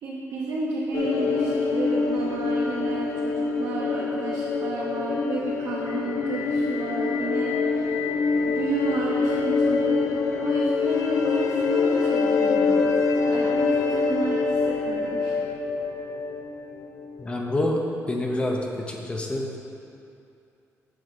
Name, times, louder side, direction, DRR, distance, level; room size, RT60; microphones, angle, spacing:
voice 1, 0.0-8.0 8.3-12.9 13.3-15.4, right 3 dB, 70° right, -6 dB, 1.0 m, -32 dB
sound 1, 0.9-17.4, left 4 dB, 80° left, 0.5 m, -25 dB
voice 2, 17.2-17.8 18.1-18.6 18.9-19.6, left 1 dB, 20° left, 1 dB, 0.6 m, -27 dB
7.7 x 3.9 x 6.6 m, 2.6 s
cardioid pair, 170°, 6 cm